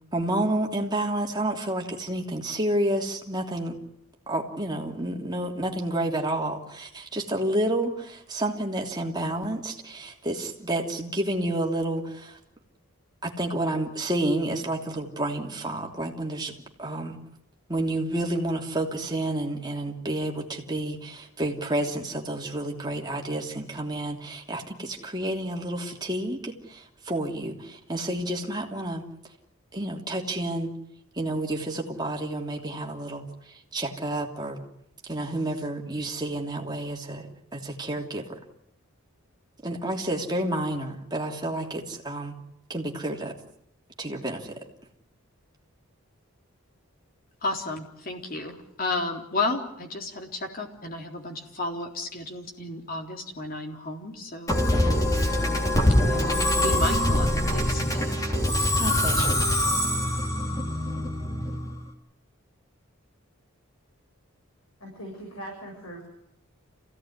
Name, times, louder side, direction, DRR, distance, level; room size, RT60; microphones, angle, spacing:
voice 1, 0.1-3.8 4.3-12.4 13.2-17.2 17.7-29.0 29.7-30.7 31.2-34.6 35.0-38.4 39.6-42.3 42.7-43.3 44.0-44.6 58.8-59.3, right 1 dB, 20° right, 0 dB, 3.0 m, -30 dB
voice 2, 47.4-54.6 55.3-58.1, left 2 dB, 40° left, 2 dB, 3.7 m, -33 dB
Musical instrument, 54.5-61.8, left 1 dB, 15° left, 3.3 m, -24 dB
voice 3, 64.8-66.1, right 1 dB, 70° left, -1 dB, 7.8 m, -40 dB
27.5 x 17.0 x 9.8 m, 0.79 s
head